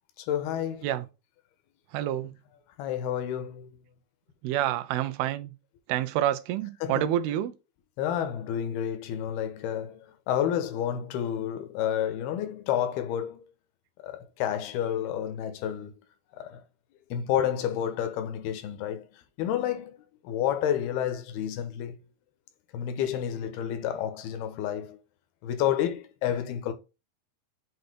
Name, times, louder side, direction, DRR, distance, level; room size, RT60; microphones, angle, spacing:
voice 1, 0.2-0.9 2.8-3.7 6.8-7.1 8.0-13.5 14.0-15.9 16.4-16.6 17.1-19.1 19.4-20.0 20.2-22.0 22.7-25.0 25.4-26.7, left 10 dB, 80° left, 2.8 m, -30 dB
voice 2, 1.9-2.3 4.4-5.5 5.9-7.5, right 12 dB, 80° right, 2.4 m, -28 dB
7.9 x 2.7 x 5.2 m
omnidirectional pair, 4.5 m